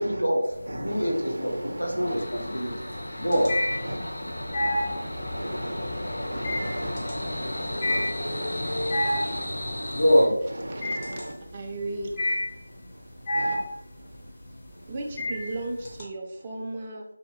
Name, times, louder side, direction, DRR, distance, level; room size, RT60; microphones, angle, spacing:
voice 1, 0.0-2.7 3.2-3.5 9.9-10.4, equal, 85° left, -2 dB, 1.1 m, -24 dB
sound 1, 0.5-1.2 1.5-16.0, left 1 dB, 20° left, 0.6 m, -30 dB
voice 2, 0.7-2.2 3.1-3.2 3.8-4.0 4.3-6.9 7.8-8.0 10.5-11.3 13.3-13.6, right 1 dB, 65° right, 4 dB, 0.6 m, -37 dB
sound 2, 2.0-10.3, left 1 dB, 55° left, 1.0 m, -33 dB
voice 3, 10.7-12.1 14.9-17.0, right 2 dB, 20° right, 0 dB, 0.4 m, -35 dB
2.9 x 2.7 x 2.9 m, 0.82 s
figure-of-eight pair, 170°, 0 cm